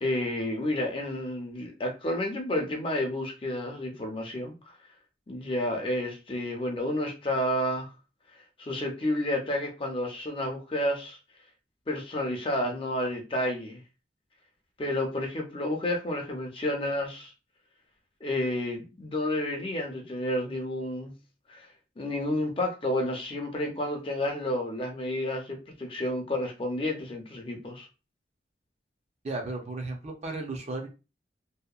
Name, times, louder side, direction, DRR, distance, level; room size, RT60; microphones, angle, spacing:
voice 1, 0.0-4.5 5.3-7.9 8.6-11.2 11.9-13.8 14.8-17.3 18.2-21.1 21.5-21.7 22.0-27.9, left 1 dB, 30° left, 2 dB, 0.5 m, -30 dB
voice 2, 29.2-30.9, right 2 dB, 40° right, 2 dB, 0.5 m, -34 dB
2.7 x 2.1 x 2.3 m, 0.30 s
head